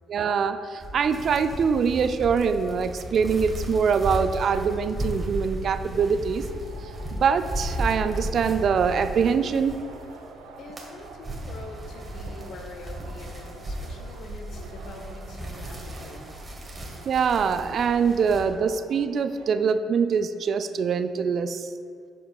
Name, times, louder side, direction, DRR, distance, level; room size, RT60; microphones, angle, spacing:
voice 1, 0.1-6.5 7.1-9.8 17.1-21.7, right 6 dB, 55° right, 10 dB, 0.4 m, -24 dB
sound 1, 0.8-10.2 10.5-18.4, right 1 dB, 25° right, 1.6 m, -35 dB
sound 2, 2.9-9.3, left 4 dB, 35° left, 0.4 m, -42 dB
sound 3, 6.4-19.5, right 4 dB, 80° right, 0.8 m, -47 dB
voice 2, 10.6-16.3, left 3 dB, 60° left, 5 dB, 0.8 m, -44 dB
11.0 x 5.3 x 2.3 m, 2.2 s
hypercardioid pair, 45°, 0 cm